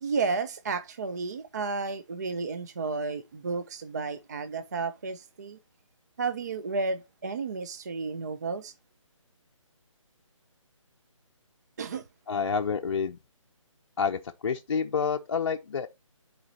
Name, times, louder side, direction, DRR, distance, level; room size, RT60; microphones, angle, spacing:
voice 1, 0.0-5.6 6.2-8.7 11.8-12.0, right 4 dB, 30° right, 0.3 m, -32 dB
voice 2, 12.3-13.2 14.0-15.9, left 6 dB, 50° left, 0.5 m, -28 dB
11.0 x 4.2 x 2.7 m
figure-of-eight pair, 155°, 17 cm